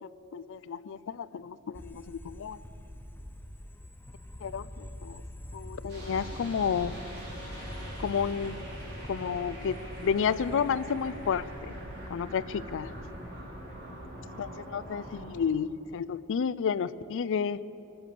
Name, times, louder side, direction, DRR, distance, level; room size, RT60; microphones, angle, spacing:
voice 1, 0.0-2.6 4.4-5.2 5.5-7.0 8.0-8.6 9.1-11.7 12.1-12.9 14.4-17.6, left 6 dB, 60° left, 17 dB, 0.4 m, -31 dB
sound 1, 1.7-13.4, left 1 dB, 10° left, 0.6 m, -45 dB
sound 2, 5.9-15.3, equal, 50° right, 3.5 m, -43 dB
19.5 x 8.0 x 6.8 m, 2.9 s
head